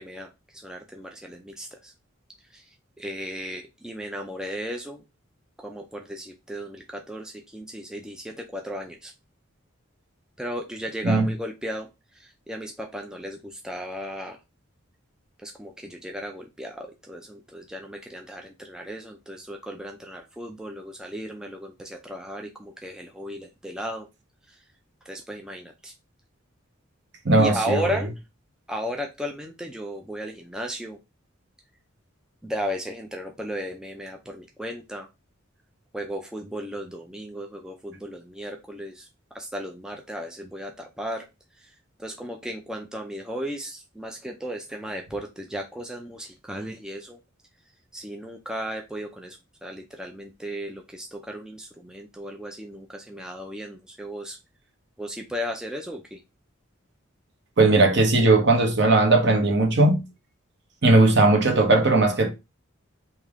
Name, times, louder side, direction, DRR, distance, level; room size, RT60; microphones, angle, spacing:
voice 1, 0.0-1.9 2.5-2.7 3.0-5.0 5.6-9.1 10.4-14.4 15.4-24.1 24.5-24.6 25.0-25.9 27.4-28.1 28.7-31.0 32.4-35.1 35.9-39.1 39.3-41.3 41.6-41.7 42.0-47.2 47.9-54.4 55.0-56.2, equal, 5° right, 0.3 m, -35 dB
voice 2, 27.2-27.9 57.6-60.0 60.8-62.3, right 2 dB, 55° right, 0.8 m, -18 dB
3.4 x 2.8 x 3.5 m
head